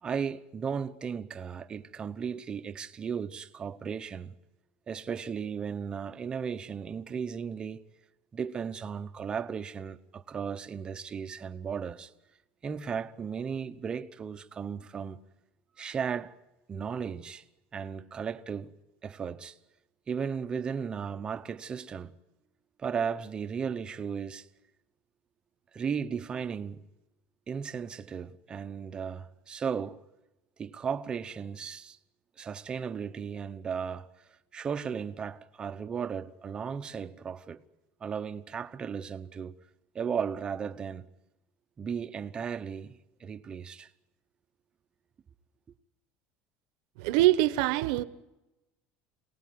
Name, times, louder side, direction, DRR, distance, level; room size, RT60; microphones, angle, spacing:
voice 1, 0.0-4.3 4.9-7.8 8.3-12.1 12.6-15.2 15.8-16.3 16.7-17.4 17.7-18.7 19.0-19.6 20.1-22.2 22.8-24.5 25.7-26.8 27.5-30.0 30.6-32.0 32.4-34.1 34.5-37.6 38.0-39.5 39.9-41.1 41.8-43.9, right 6 dB, 20° right, 0.9 m, -35 dB
voice 2, 47.0-48.0, right 15 dB, 75° right, 1.1 m, -24 dB
27.0 x 18.5 x 9.4 m
cardioid pair, 160°, 4 cm